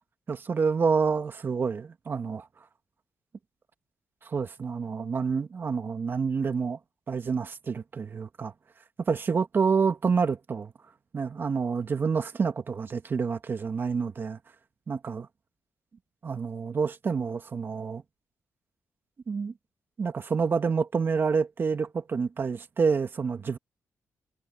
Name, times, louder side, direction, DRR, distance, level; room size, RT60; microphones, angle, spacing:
voice 1, 0.3-2.5 4.2-6.8 7.1-8.5 9.0-10.7 11.1-14.4 14.9-15.3 16.2-18.0 19.3-19.5 20.0-23.6, right 5 dB, 45° right, 2.1 m, -28 dB
cardioid pair, 105°, 5 cm